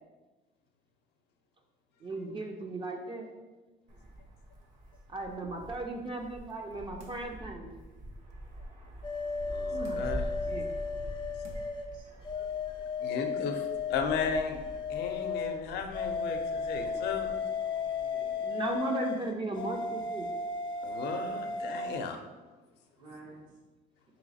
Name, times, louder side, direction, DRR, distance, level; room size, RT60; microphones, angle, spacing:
voice 1, 2.0-3.3 5.1-7.7 9.7-10.0 10.5-10.7 18.4-20.3, right 2 dB, 30° right, 2 dB, 0.4 m, -36 dB
Wind, 3.9-18.8, equal, 50° right, 0.8 m, -45 dB
sound 1, 7.0-7.4 7.9-8.0 9.8-10.3 11.0-11.1 11.4-11.8 12.2-12.3, right 3 dB, 90° right, 0.6 m, -53 dB
sound 2, 9.0-11.8 12.2-15.6 15.9-22.0, left 5 dB, 30° left, 0.5 m, -34 dB
voice 2, 9.5-10.3 13.0-17.3 20.8-22.2, left 5 dB, 80° left, 5 dB, 0.5 m, -35 dB
voice 3, 11.2-11.7 11.9-12.0 12.3-12.4 13.0-13.2 16.6-17.3 17.8-18.6 23.0-23.4, right 2 dB, 65° right, -4 dB, 1.1 m, -54 dB
3.1 x 2.9 x 4.1 m, 1.2 s
cardioid pair, 110°, 17 cm